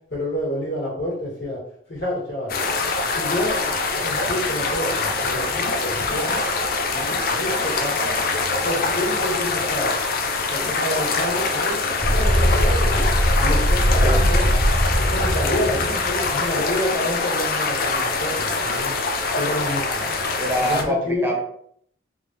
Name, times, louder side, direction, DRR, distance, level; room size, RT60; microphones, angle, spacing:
voice 1, 0.1-1.6 1.9-2.6 3.1-3.6 4.0-6.4 7.3-8.2 8.6-9.9 10.4-11.8 12.1-13.1 13.4-14.4 15.0-18.9 19.3-20.0 20.7-21.3, left 1 dB, 75° left, -5 dB, 1.4 m, -28 dB
sound 1, 2.5-20.8, left 3 dB, 50° left, 0.4 m, -24 dB
sound 2, 12.0-16.6, equal, 50° right, 1.4 m, -20 dB
voice 2, 20.4-21.4, equal, 15° right, 0 dB, 0.4 m, -25 dB
3.3 x 2.3 x 2.7 m, 0.65 s
head